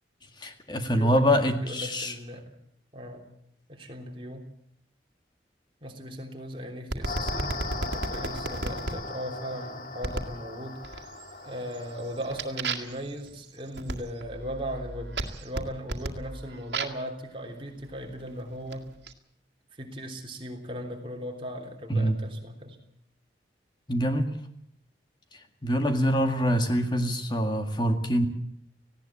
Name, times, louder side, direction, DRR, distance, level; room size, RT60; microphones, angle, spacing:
voice 1, 0.4-2.1 21.9-22.2 23.9-24.3 25.6-28.3, equal, 25° left, 6 dB, 2.0 m, -25 dB
voice 2, 0.9-2.4 2.9-3.3 3.7-4.4 5.8-11.1 11.4-18.9 19.7-22.8, equal, 30° right, 2 dB, 3.3 m, -38 dB
sound 1, 6.9-9.0 10.0-10.4 10.8-11.3 11.7-17.1 17.9-19.1, right 2 dB, 80° right, 2.0 m, -34 dB
sound 2, 7.1-12.6, left 3 dB, 50° left, 2.3 m, -38 dB
18.5 x 16.5 x 8.6 m, 0.71 s
head